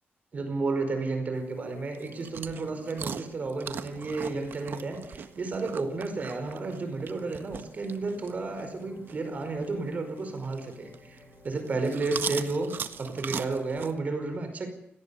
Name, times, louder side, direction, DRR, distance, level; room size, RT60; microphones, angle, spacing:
voice 1, 0.3-12.7 13.0-14.7, right 3 dB, 40° right, 7 dB, 5.0 m, -32 dB
sound 1, 0.7-14.1, left 2 dB, 35° left, 3.6 m, -53 dB
sound 2, 1.3-14.0, right 7 dB, 60° right, 1.5 m, -41 dB
26.0 x 19.0 x 7.1 m, 0.76 s
wide cardioid pair, 155°, 4 cm